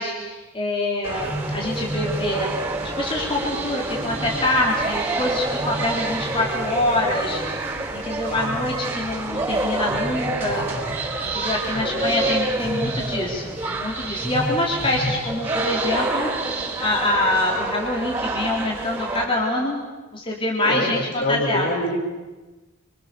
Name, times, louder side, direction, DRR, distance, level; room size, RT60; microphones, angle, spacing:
voice 1, 0.0-2.5 2.8-7.4 7.9-10.7 11.2-16.3 16.8-19.8 20.1-21.7, left 1 dB, 25° left, -2 dB, 3.9 m, -25 dB
sound 1, 1.0-19.2, right 2 dB, 10° right, 6.6 m, -27 dB
voice 2, 11.7-12.4 20.6-22.0, left 1 dB, 45° left, 2 dB, 4.8 m, -26 dB
29.5 x 25.5 x 7.0 m, 1.2 s
head